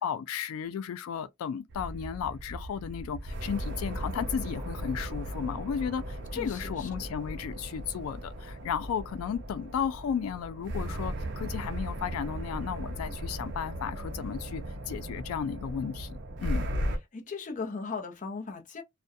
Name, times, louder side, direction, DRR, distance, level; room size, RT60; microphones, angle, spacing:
voice 1, 0.0-16.7, left 7 dB, 90° left, 0.3 m, -34 dB
sound 1, 1.7-17.0, equal, 60° right, 0.6 m, -37 dB
voice 2, 6.3-7.1 17.1-18.8, left 4 dB, 40° left, 0.6 m, -38 dB
2.4 x 2.1 x 2.6 m
head